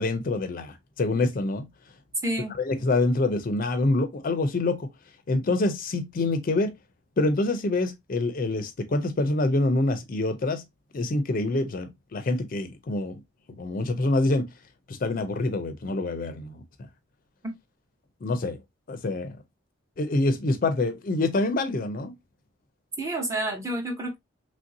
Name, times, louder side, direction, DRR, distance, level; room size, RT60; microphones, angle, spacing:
voice 1, 0.0-1.7 2.6-4.9 5.3-6.7 7.2-10.6 10.9-13.2 13.6-14.5 14.9-16.6 18.2-18.6 18.9-19.4 20.0-22.2, left 2 dB, 45° left, 0.4 m, -26 dB
voice 2, 2.2-2.5 17.4-17.5 23.0-24.2, right 1 dB, 15° right, 0.7 m, -29 dB
3.1 x 2.6 x 2.6 m
head